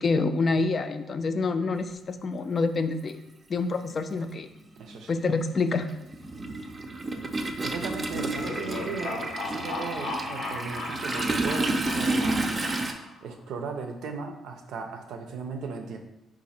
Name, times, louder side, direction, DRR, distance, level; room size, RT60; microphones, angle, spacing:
voice 1, 0.0-3.2 3.5-4.5 5.1-5.9, left 3 dB, 45° left, 9 dB, 0.3 m, -27 dB
Toilet flush, 2.4-2.5 3.8-4.0 4.3-12.9, right 2 dB, 30° right, 0.4 m, -30 dB
voice 2, 4.8-5.2 7.6-12.5 13.2-16.0, right 5 dB, 80° right, 4 dB, 0.5 m, -37 dB
sound 1, 8.1-13.2, left 2 dB, 75° left, 0.7 m, -36 dB
3.9 x 2.5 x 4.1 m, 0.92 s
cardioid pair, 90°, 0 cm